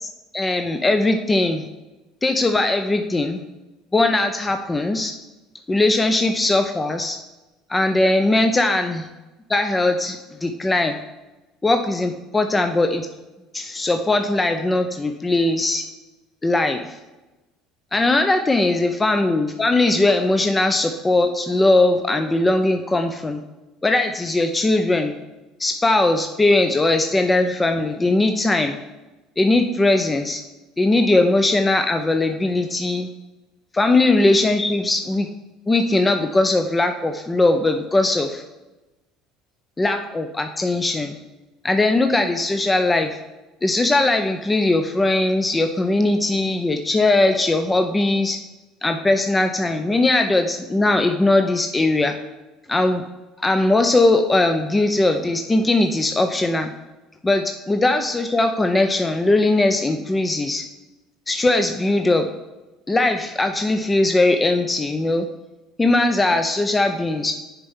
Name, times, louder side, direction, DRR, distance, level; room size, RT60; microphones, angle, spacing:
voice 1, 0.0-1.6 2.2-3.4 3.9-5.1 5.7-7.2 7.7-9.1 9.5-11.0 11.6-13.1 13.5-15.8 16.4-17.0 17.9-23.4 23.8-25.2 25.6-28.8 29.4-30.4 30.8-33.1 33.7-35.3 35.7-38.4 39.8-41.2 41.6-43.2 43.6-48.4 48.8-52.2 52.7-53.0 53.4-56.7 57.2-60.6 61.3-62.3 62.9-65.2 65.8-67.3, left 2 dB, 20° left, 6 dB, 0.6 m, -19 dB
6.8 x 4.4 x 5.4 m, 1.1 s
hypercardioid pair, 75°, 0 cm